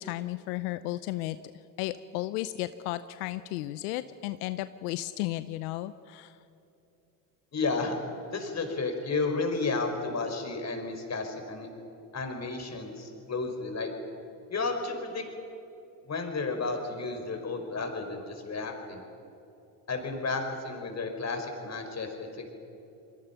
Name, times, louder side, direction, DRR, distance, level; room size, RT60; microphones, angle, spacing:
voice 1, 0.0-1.4 1.8-6.4, left 16 dB, 90° left, 13 dB, 0.7 m, -34 dB
voice 2, 7.5-8.0 8.3-11.7 12.1-13.9 14.5-15.2 16.0-19.0 19.9-22.1 22.4-22.5, left 3 dB, 35° left, 4 dB, 4.9 m, -32 dB
29.0 x 22.0 x 5.8 m, 2.9 s
supercardioid pair, 75°, 45 cm